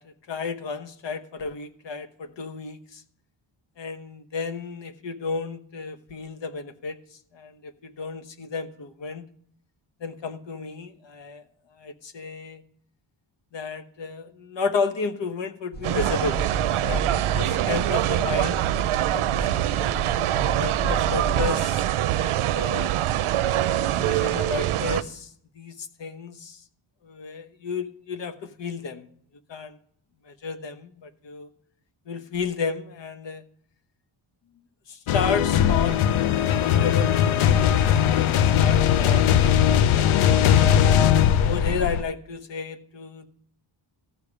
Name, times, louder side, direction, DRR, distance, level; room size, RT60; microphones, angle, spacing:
voice 1, 0.0-3.0 3.8-7.0 7.3-9.2 10.0-11.4 11.8-12.6 13.5-18.7 19.0-19.7 20.5-21.9 22.1-23.0 23.8-25.3 25.6-26.6 27.0-29.1 29.5-29.8 30.3-31.5 32.1-33.4 34.9-36.0 36.6-37.1 37.4-39.3 41.4-43.3, left 5 dB, 60° left, 10 dB, 1.2 m, -32 dB
sound 1, 15.7-21.5, right 3 dB, 20° left, 0.9 m, -33 dB
sound 2, 15.8-25.0, right 13 dB, 85° right, 0.7 m, -24 dB
sound 3, 35.1-42.0, left 9 dB, 75° left, 0.7 m, -19 dB
14.0 x 5.2 x 8.4 m, 0.65 s
wide cardioid pair, 140°, 49 cm